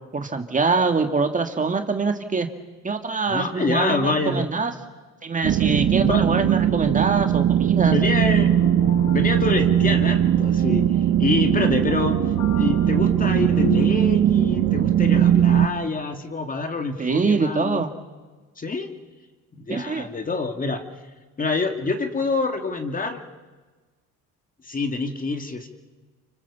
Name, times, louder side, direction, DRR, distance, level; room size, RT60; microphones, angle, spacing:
voice 1, 0.1-2.5 2.8-4.7 5.2-7.9 17.0-17.9 19.7-20.1, right 4 dB, 25° right, 6 dB, 2.1 m, -24 dB
voice 2, 3.3-4.5 6.0-6.4 7.8-8.5 9.1-10.9 11.2-12.2 12.6-17.8 18.6-18.9 19.6-20.8 21.4-23.2 24.6-25.7, left 3 dB, 25° left, 6 dB, 2.7 m, -26 dB
sound 1, 5.4-15.7, right 10 dB, 70° right, 1.4 m, -19 dB
sound 2, 8.2-13.9, left 12 dB, 60° left, 1.1 m, -35 dB
29.5 x 24.5 x 7.2 m, 1.3 s
cardioid pair, 100°, 31 cm